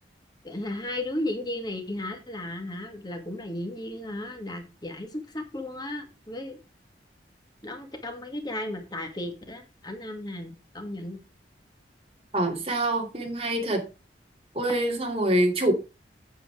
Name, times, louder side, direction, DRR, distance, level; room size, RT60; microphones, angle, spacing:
voice 1, 0.4-6.6 7.6-11.2, left 1 dB, 25° left, 1.9 m, -35 dB
voice 2, 12.3-13.9 14.5-15.7, right 1 dB, 35° right, 2.6 m, -25 dB
8.5 x 6.9 x 4.8 m
head